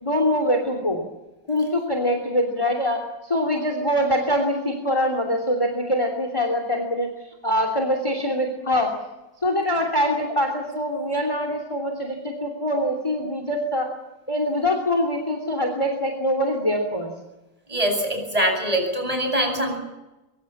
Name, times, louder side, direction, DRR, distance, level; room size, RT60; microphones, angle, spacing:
voice 1, 0.0-1.0 1.5-8.9 9.4-13.9 14.3-17.1, equal, 15° left, 4 dB, 3.1 m, -24 dB
voice 2, 17.7-19.8, right 1 dB, 20° right, 4 dB, 7.9 m, -23 dB
24.0 x 24.0 x 7.4 m, 1.0 s
omnidirectional pair, 2.0 m